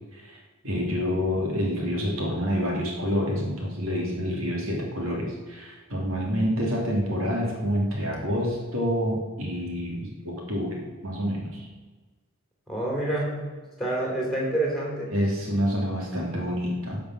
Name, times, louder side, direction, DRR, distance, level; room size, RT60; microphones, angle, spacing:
voice 1, 0.6-11.7 15.1-17.0, equal, 65° right, -1 dB, 2.8 m, -27 dB
voice 2, 12.7-13.4 13.8-15.1, right 1 dB, ahead, -2 dB, 3.0 m, -27 dB
16.0 x 5.3 x 6.0 m, 1.3 s
head